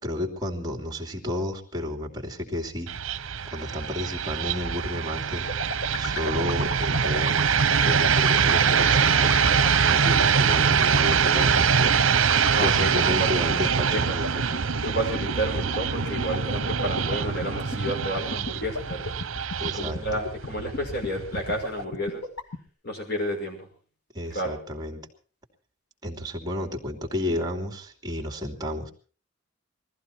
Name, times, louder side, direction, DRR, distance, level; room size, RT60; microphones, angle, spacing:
voice 1, 0.0-2.9 3.4-5.5 6.0-7.6 7.8-9.5 9.8-12.0 12.6-14.7 19.6-20.0 24.1-25.0 26.0-28.9, left 1 dB, 20° right, 3 dB, 2.9 m, -32 dB
sound 1, 2.9-21.8, right 6 dB, 75° right, 0.8 m, -24 dB
sound 2, 5.5-22.6, left 2 dB, 75° left, 2.3 m, -31 dB
voice 2, 12.5-14.2 14.8-19.1 19.7-22.2 22.8-23.7 24.3-24.5, equal, 50° left, 2 dB, 5.8 m, -31 dB
21.0 x 15.0 x 4.5 m, 0.41 s
head